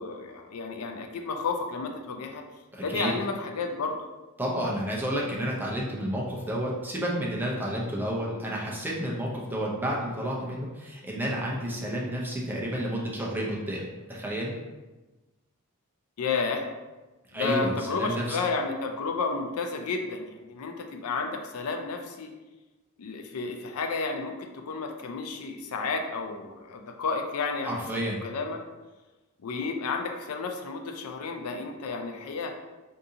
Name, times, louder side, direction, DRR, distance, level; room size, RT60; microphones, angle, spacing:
voice 1, 0.0-2.4 2.8-4.0 16.2-16.7 17.3-22.3 23.0-27.7 28.2-28.6 29.4-32.5, left 4 dB, 85° left, 4 dB, 0.4 m, -31 dB
voice 2, 2.7-3.1 4.4-14.5 17.3-18.4 27.6-28.2, equal, 10° right, -4 dB, 0.5 m, -31 dB
2.7 x 2.6 x 3.6 m, 1.1 s
head